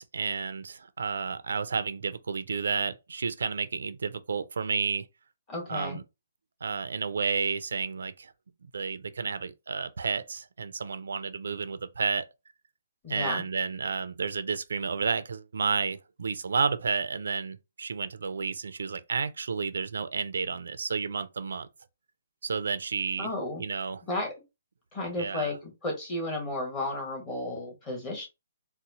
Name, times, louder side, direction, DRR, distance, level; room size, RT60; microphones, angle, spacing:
voice 1, 0.0-5.1 5.7-6.0 6.6-8.3 8.6-12.3 13.1-21.7 22.4-23.3 23.6-24.0 25.2-25.6, right 5 dB, 85° right, 0.4 m, -31 dB
voice 2, 5.5-6.0 13.0-13.4 23.2-23.6 24.1-24.3 24.9-28.3, left 2 dB, 15° left, 1.2 m, -33 dB
4.1 x 2.0 x 2.7 m
hypercardioid pair, 170°, 0 cm